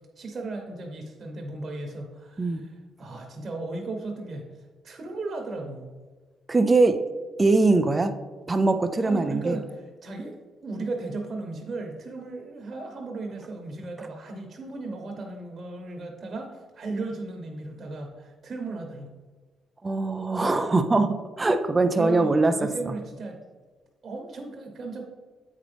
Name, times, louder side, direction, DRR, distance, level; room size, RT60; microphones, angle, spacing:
voice 1, 0.2-5.9 9.0-10.4 10.6-19.1 22.0-23.4 24.0-25.0, right 3 dB, 40° right, 1 dB, 1.1 m, -36 dB
voice 2, 6.5-7.0 7.4-8.1 8.5-9.6 19.8-22.9, right 3 dB, 25° right, 8 dB, 0.5 m, -22 dB
8.2 x 5.0 x 3.4 m, 1.4 s
cardioid pair, 90°, 0 cm